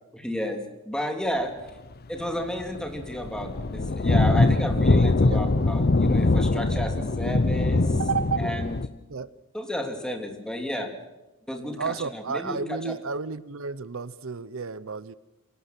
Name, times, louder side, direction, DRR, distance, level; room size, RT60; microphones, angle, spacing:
voice 1, 0.1-1.5 2.1-8.0 8.4-8.8 9.5-10.9 11.5-12.9, equal, 5° left, 5 dB, 3.1 m, -32 dB
sound 1, 2.2-2.4 2.6-8.9, left 2 dB, 50° left, 0.8 m, -22 dB
voice 2, 8.0-8.4 9.1-9.3 11.8-15.1, right 5 dB, 70° right, 17 dB, 0.8 m, -31 dB
25.5 x 18.5 x 6.0 m, 1.1 s
head